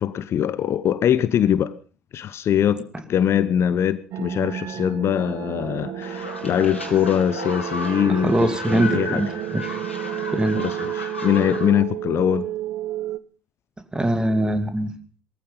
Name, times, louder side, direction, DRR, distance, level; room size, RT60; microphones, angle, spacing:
voice 1, 0.0-1.8 2.1-9.2 10.6-12.5, left 9 dB, 45° left, 0.9 m, -22 dB
sound 1, 4.1-13.2, right 12 dB, 50° right, 1.0 m, -31 dB
sound 2, 6.0-11.7, left 2 dB, 90° left, 2.9 m, -34 dB
voice 2, 8.2-9.3 9.5-9.8 10.3-10.7 13.9-14.9, right 1 dB, 10° right, 2.5 m, -22 dB
19.0 x 14.5 x 5.3 m
figure-of-eight pair, 60°, 6 cm